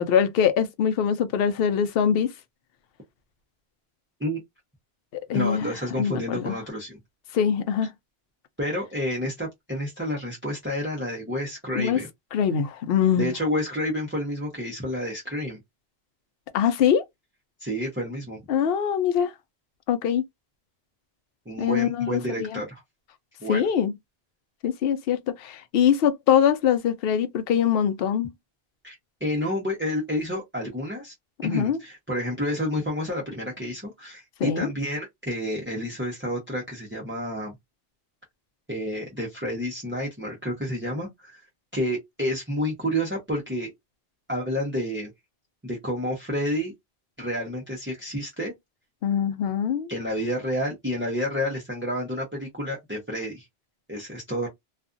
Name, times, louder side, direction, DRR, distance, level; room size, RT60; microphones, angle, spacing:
voice 1, 0.0-2.3 5.1-5.6 6.0-6.6 7.3-7.9 11.7-12.0 12.3-13.3 16.5-17.0 18.5-19.3 19.9-20.2 21.6-22.6 23.5-23.9 24.6-28.3 31.4-31.8 34.4-34.7 49.0-49.9, left 8 dB, 65° left, 0.7 m, -23 dB
voice 2, 5.3-7.0 8.6-12.1 13.2-15.6 17.6-18.4 21.5-22.8 23.4-23.7 28.8-31.1 31.4-37.5 38.7-41.4 41.7-43.7 44.3-45.1 45.6-46.7 47.2-48.5 49.9-53.5 53.9-54.5, equal, 15° right, 0.7 m, -29 dB
2.5 x 2.3 x 2.4 m
omnidirectional pair, 1.1 m